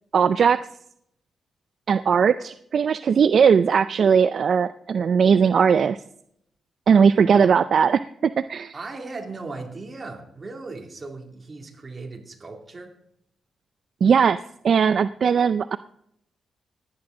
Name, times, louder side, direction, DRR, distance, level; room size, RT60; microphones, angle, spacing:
voice 1, 0.1-0.6 1.9-6.0 6.9-8.8 14.0-15.8, right 6 dB, 55° right, 14 dB, 0.4 m, -19 dB
voice 2, 8.7-12.9, right 3 dB, 30° right, 3 dB, 2.5 m, -37 dB
16.5 x 10.5 x 3.8 m, 0.74 s
cardioid pair, 110°, 0 cm